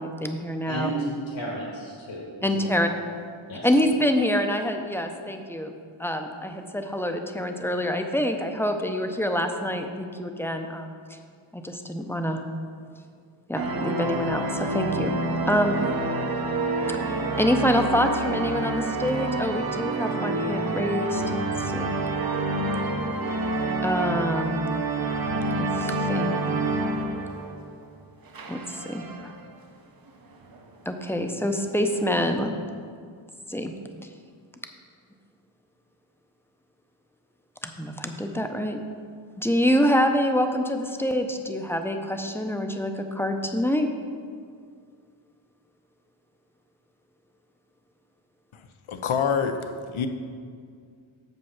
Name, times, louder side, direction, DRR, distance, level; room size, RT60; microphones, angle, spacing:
voice 1, 0.0-0.9 2.4-2.9 3.6-5.7 6.0-10.9 11.5-12.4 13.5-15.1 15.5-15.8 17.0-21.2 21.6-21.9 23.8-24.6 25.5-26.4 28.5-29.3 30.9-32.5 33.5-33.7 37.6-38.8 39.4-43.9, equal, 5° left, 5 dB, 0.5 m, -26 dB
voice 2, 0.7-2.7 3.5-3.7, right 2 dB, 70° left, -5 dB, 1.7 m, -33 dB
sound 1, 13.5-27.9 28.3-29.5 30.1-30.2 30.4-30.6 31.4-32.4, right 2 dB, 50° right, 0.7 m, -28 dB
voice 3, 48.5-50.1, left 6 dB, 90° left, 7 dB, 0.7 m, -27 dB
7.3 x 5.4 x 5.8 m, 2.1 s
wide cardioid pair, 85°, 47 cm